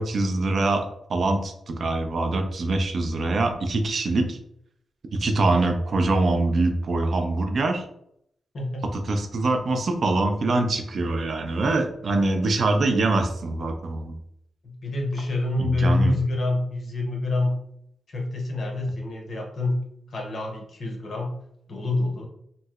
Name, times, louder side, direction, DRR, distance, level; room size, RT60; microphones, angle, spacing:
voice 1, 0.0-4.4 5.1-7.8 8.9-14.2 15.6-16.1, right 2 dB, 45° right, 5 dB, 0.4 m, -24 dB
voice 2, 8.5-8.9 14.6-17.6 18.1-21.3 21.7-22.3, left 2 dB, 50° left, 1 dB, 0.7 m, -27 dB
3.0 x 2.8 x 2.3 m, 0.72 s
wide cardioid pair, 145°, 0 cm